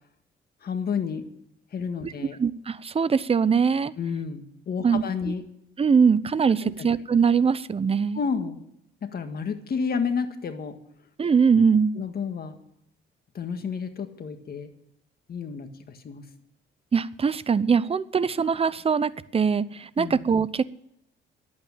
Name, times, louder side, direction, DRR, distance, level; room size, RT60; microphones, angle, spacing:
voice 1, 0.6-1.2 1.7-2.4 4.0-5.4 6.6-6.9 8.1-8.6 9.0-10.8 11.9-12.6 13.3-14.7 15.3-16.2 20.0-20.2, left 6 dB, 50° left, 7 dB, 1.8 m, -30 dB
voice 2, 2.4-3.9 4.8-5.3 5.8-8.2 11.2-12.0 16.9-20.6, right 6 dB, 30° right, 17 dB, 0.6 m, -22 dB
11.0 x 8.8 x 8.9 m, 0.73 s
cardioid pair, 90°, 20 cm